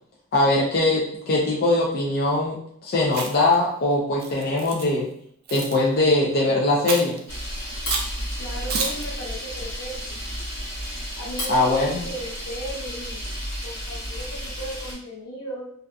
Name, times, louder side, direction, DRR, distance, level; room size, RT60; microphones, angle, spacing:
voice 1, 0.3-2.6 2.8-5.1 5.5-7.2 11.5-12.0, left 2 dB, 45° left, -4 dB, 0.5 m, -21 dB
Chewing mastication, 3.1-3.5 4.2-4.9 5.5-5.8 6.9-7.2 7.9-8.1 8.7-9.1, right 4 dB, 45° right, 0.4 m, -29 dB
Camera, 7.3-14.9, equal, 65° left, 1.0 m, -32 dB
voice 2, 8.4-10.2 11.2-13.3 13.6-15.7, right 1 dB, 80° left, -2 dB, 0.8 m, -36 dB
2.6 x 2.3 x 2.3 m, 0.65 s
head